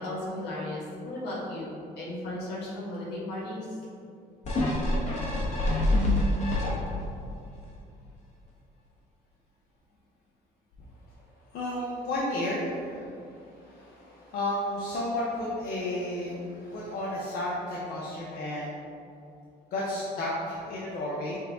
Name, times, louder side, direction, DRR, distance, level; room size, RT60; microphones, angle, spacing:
voice 1, 0.0-3.8, left 1 dB, 80° left, -5 dB, 1.4 m, -35 dB
sound 1, 4.4-7.1 7.6-7.7, left 1 dB, 45° left, 1.2 m, -26 dB
voice 2, 11.5-18.8 19.7-21.4, left 1 dB, 65° left, -6 dB, 0.8 m, -32 dB
6.4 x 2.3 x 3.6 m, 2.4 s
cardioid pair, 110°, 17 cm